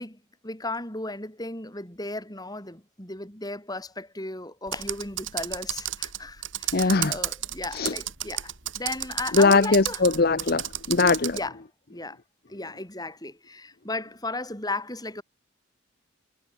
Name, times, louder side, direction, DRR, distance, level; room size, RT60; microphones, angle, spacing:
voice 1, 0.0-10.0 11.3-11.6 11.9-12.2 12.5-15.2, left 2 dB, 20° left, 6.8 m, -35 dB
Computer keyboard, 4.7-11.5, right 12 dB, 65° right, 4.3 m, -32 dB
voice 2, 6.7-7.2 7.7-7.9 9.3-11.4, left 3 dB, 50° left, 0.9 m, -21 dB
head